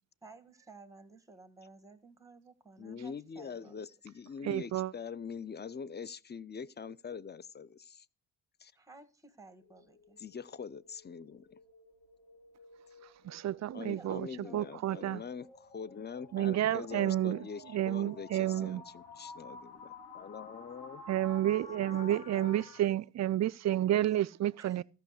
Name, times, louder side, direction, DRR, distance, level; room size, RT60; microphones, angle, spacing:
voice 1, 0.2-3.8 8.7-10.2 13.9-14.9 21.9-22.7 23.7-24.0 24.6-24.8, right 3 dB, 10° right, 1.6 m, -55 dB
voice 2, 2.8-8.1 8.6-8.7 10.2-11.6 13.7-21.0, left 6 dB, 25° left, 0.5 m, -44 dB
voice 3, 4.4-4.9 13.2-14.3 14.5-15.2 16.3-17.4 17.7-18.8 21.1-24.8, right 13 dB, 40° right, 0.4 m, -30 dB
sound 1, 9.6-22.8, left 3 dB, 65° left, 2.8 m, -51 dB
13.5 x 5.8 x 6.5 m
hypercardioid pair, 55°, 42 cm